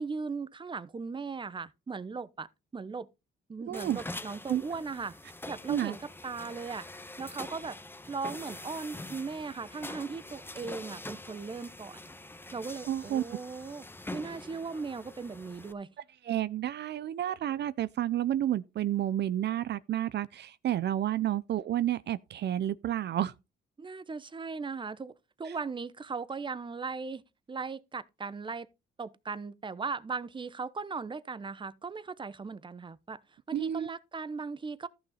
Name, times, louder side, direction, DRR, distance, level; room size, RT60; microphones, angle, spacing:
voice 1, 0.0-3.1 3.5-5.2 5.5-6.9 7.2-7.8 8.1-12.0 12.5-13.8 14.1-15.9 23.8-27.2 27.5-28.7 29.0-33.2 33.5-34.9, right 4 dB, 25° right, 0.9 m, -38 dB
sound 1, 3.7-15.7, left 2 dB, 10° left, 1.1 m, -45 dB
voice 2, 3.7-4.0 4.5-4.6 5.7-6.0 12.9-13.2 16.2-23.3 25.4-25.6 33.5-33.9, right 12 dB, 60° right, 0.5 m, -30 dB
14.0 x 6.3 x 4.2 m
cardioid pair, 90°, 20 cm